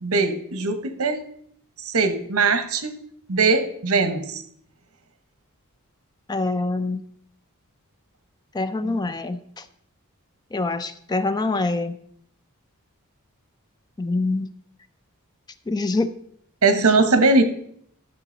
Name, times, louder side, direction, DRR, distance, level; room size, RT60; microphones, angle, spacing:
voice 1, 0.0-1.2 1.8-3.0 3.3-4.4 8.8-9.0 16.6-17.4, right 3 dB, 70° right, 10 dB, 1.1 m, -20 dB
voice 2, 6.3-7.0 8.5-9.4 10.5-11.9 14.0-14.5 15.7-16.1, left 2 dB, 20° left, 11 dB, 0.4 m, -24 dB
12.0 x 7.1 x 3.9 m, 0.68 s
head